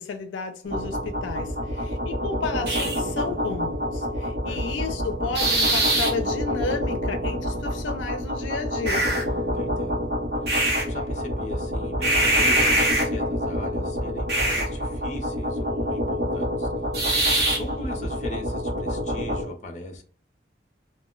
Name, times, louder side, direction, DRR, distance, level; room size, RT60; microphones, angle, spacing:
voice 1, 0.0-9.1, left 4 dB, 90° left, 0.4 m, -32 dB
sound 1, 0.7-19.4, equal, 60° right, 0.8 m, -25 dB
voice 2, 9.5-10.0 10.4-16.7 17.6-20.0, left 1 dB, 40° left, 0.6 m, -38 dB
2.1 x 2.1 x 3.7 m
head